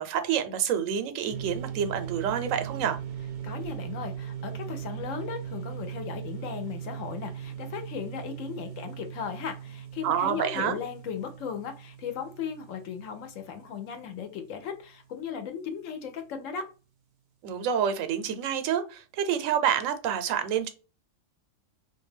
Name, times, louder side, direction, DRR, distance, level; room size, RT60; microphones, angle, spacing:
voice 1, 0.0-3.0 10.0-10.8 17.4-20.7, right 8 dB, 90° right, 1.0 m, -28 dB
sound 1, 1.3-14.8, right 9 dB, 60° right, 0.5 m, -39 dB
voice 2, 3.4-16.7, left 7 dB, 80° left, 1.0 m, -37 dB
2.5 x 2.2 x 3.2 m
omnidirectional pair, 1.3 m